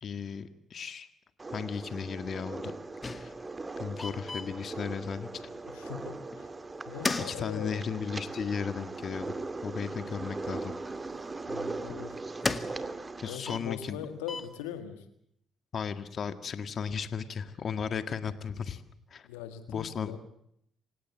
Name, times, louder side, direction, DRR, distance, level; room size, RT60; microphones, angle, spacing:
voice 1, 0.0-1.1 1.5-2.7 3.0-3.3 3.8-5.5 7.3-9.3 9.6-10.7 13.2-14.0 15.7-18.8 19.1-19.3 19.7-20.1, left 6 dB, 55° left, 10 dB, 1.8 m, -35 dB
sound 1, 1.4-13.4, right 3 dB, 30° right, 2.4 m, -39 dB
sound 2, 3.0-3.7 4.0-5.3 6.3-6.5 6.8-8.2 9.1-9.2 10.2-10.3 11.5-13.1 13.4-14.6, left 3 dB, 30° left, 2.1 m, -36 dB
voice 2, 5.7-6.6 6.9-7.8 11.5-12.2 13.2-15.1 19.2-20.2, left 9 dB, 90° left, 9 dB, 1.8 m, -41 dB
28.0 x 17.5 x 7.3 m, 0.71 s
hypercardioid pair, 55°, 0 cm